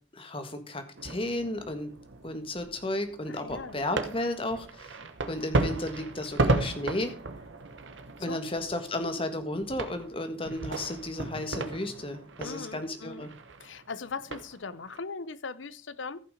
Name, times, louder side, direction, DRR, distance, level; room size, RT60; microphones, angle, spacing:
voice 1, 0.1-1.9 2.2-4.9 5.3-7.1 8.2-13.3, left 1 dB, 30° left, 8 dB, 1.5 m, -33 dB
sound 1, 1.0-15.0, right 2 dB, 85° right, 1.1 m, -35 dB
voice 2, 3.3-3.8 8.2-8.6 12.4-13.3 13.6-16.2, left 4 dB, 85° left, 16 dB, 0.7 m, -40 dB
14.5 x 5.9 x 5.0 m, 0.38 s
head